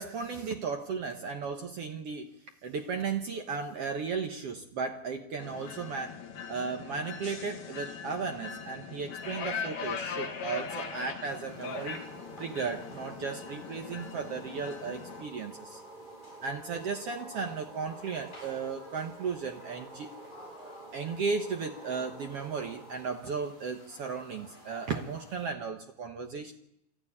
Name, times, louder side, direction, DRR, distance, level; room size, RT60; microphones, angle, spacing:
voice 1, 0.0-2.3 2.6-6.2 6.5-12.0 12.4-15.8 16.4-20.1 20.9-26.5, right 5 dB, 70° right, 4 dB, 1.4 m, -35 dB
sound 1, 5.4-15.2, left 6 dB, 75° left, 4.1 m, -40 dB
sound 2, 11.3-25.5, left 1 dB, 10° left, 7.8 m, -54 dB
sound 3, 11.6-23.1, right 2 dB, 10° right, 3.3 m, -49 dB
26.0 x 14.0 x 9.9 m, 0.86 s
omnidirectional pair, 4.4 m